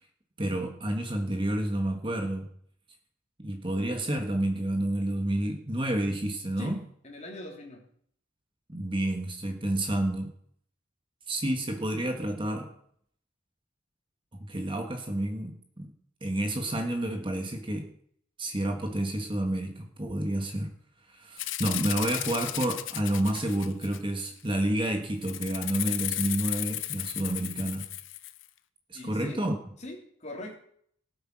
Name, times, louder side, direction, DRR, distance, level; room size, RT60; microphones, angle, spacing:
voice 1, 0.4-2.5 3.4-6.8 8.7-10.3 11.3-12.7 14.3-15.9 16.2-17.9 18.4-20.7 21.1-27.9 28.9-29.5, right 1 dB, 25° right, 4 dB, 1.6 m, -30 dB
voice 2, 7.0-7.8 28.9-29.4 29.8-30.6, left 1 dB, 35° left, 1 dB, 3.3 m, -41 dB
Rattle (instrument), 21.4-24.2 25.2-28.4, left 14 dB, 70° left, 0.8 m, -34 dB
19.0 x 8.2 x 6.2 m, 0.63 s
head